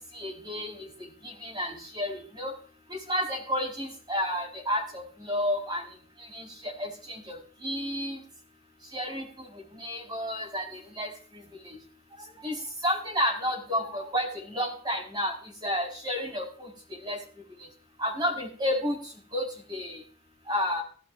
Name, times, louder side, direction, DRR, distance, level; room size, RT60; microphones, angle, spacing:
voice 1, 0.1-2.5 2.9-5.8 6.3-8.2 8.9-9.5 9.7-11.1 11.6-11.8 12.4-12.6 12.8-15.3 15.6-17.2 18.0-19.0 19.3-20.0 20.5-20.8, equal, 20° right, 0 dB, 4.6 m, -31 dB
17.0 x 12.0 x 2.6 m, 0.43 s
head